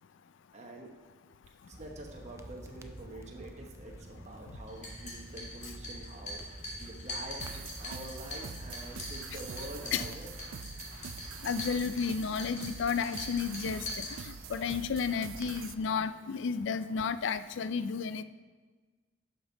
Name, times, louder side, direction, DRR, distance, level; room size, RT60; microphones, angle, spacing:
voice 1, 0.5-0.9 1.6-10.3, right 1 dB, 35° right, 0 dB, 1.0 m, -46 dB
sound 1, 1.7-15.9, right 1 dB, 15° right, 0.3 m, -49 dB
sound 2, 4.7-14.7, left 2 dB, 35° left, 1.8 m, -43 dB
sound 3, 7.4-15.7, right 6 dB, 90° right, 0.4 m, -45 dB
voice 2, 11.4-14.0 14.5-18.2, left 6 dB, 65° left, 13 dB, 0.4 m, -32 dB
11.0 x 5.3 x 4.0 m, 1.4 s
head